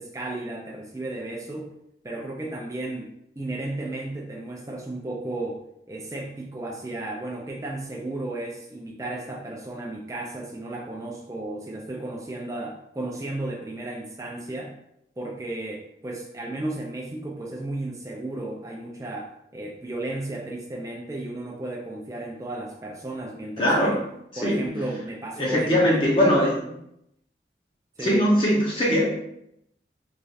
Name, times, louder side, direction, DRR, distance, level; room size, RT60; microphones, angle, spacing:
voice 1, 0.0-1.7 2.0-3.1 3.4-14.8 15.2-24.0 24.4-26.1 26.6-26.8 28.0-28.2, right 2 dB, 20° right, -1 dB, 0.3 m, -34 dB
voice 2, 23.6-24.0 24.4-24.8 25.4-26.6 28.0-29.2, equal, 30° left, -4 dB, 0.6 m, -21 dB
3.1 x 2.4 x 2.7 m, 0.78 s
head